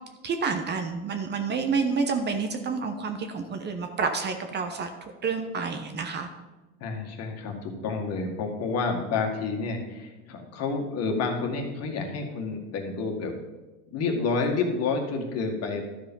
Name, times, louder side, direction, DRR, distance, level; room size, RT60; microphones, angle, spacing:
voice 1, 0.2-6.3, right 5 dB, 30° right, 7 dB, 0.9 m, -29 dB
voice 2, 6.8-13.4 13.9-15.8, left 4 dB, 45° left, 3 dB, 1.9 m, -29 dB
12.5 x 4.9 x 5.4 m, 1.1 s
supercardioid pair, 120°, 36 cm